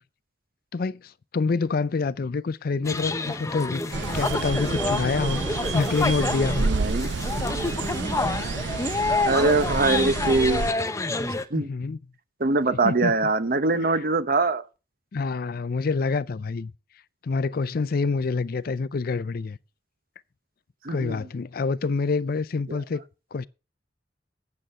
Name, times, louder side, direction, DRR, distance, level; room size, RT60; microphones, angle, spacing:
voice 1, 0.7-6.7 11.6-12.0 12.7-13.1 13.7-14.0 15.1-16.7 17.2-19.6 20.9-23.0 23.3-23.5, left 4 dB, 55° left, 0.4 m, -27 dB
sound 1, 2.8-11.4, left 2 dB, 15° left, 0.8 m, -28 dB
sound 2, 3.9-10.7, right 4 dB, 85° right, 0.6 m, -30 dB
voice 2, 6.6-7.1 9.2-10.6 11.5-11.7 12.4-14.6 20.8-21.2 22.7-22.8, right 3 dB, 55° right, 0.9 m, -23 dB
9.0 x 7.6 x 5.4 m
head